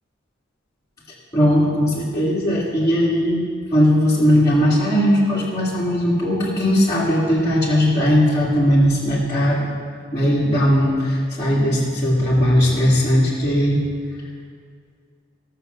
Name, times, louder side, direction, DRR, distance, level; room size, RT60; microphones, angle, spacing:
voice 1, 1.3-3.4 3.7-9.7 10.1-13.8, equal, 15° left, -9 dB, 2.1 m, -18 dB
15.5 x 6.7 x 6.6 m, 2.1 s
head